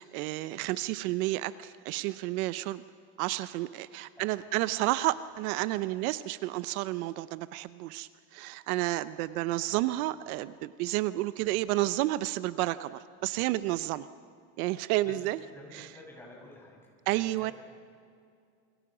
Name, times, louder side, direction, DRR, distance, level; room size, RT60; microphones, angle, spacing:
voice 1, 0.0-2.8 3.2-14.1 14.6-15.4 15.7-15.9 17.1-17.5, right 17 dB, 75° right, 15 dB, 0.8 m, -31 dB
voice 2, 4.2-4.7 9.7-9.8 15.0-15.1 15.5-16.8 17.1-17.5, left 2 dB, 5° left, -2 dB, 6.5 m, -51 dB
28.5 x 24.0 x 6.2 m, 2.3 s
supercardioid pair, 150°, 44 cm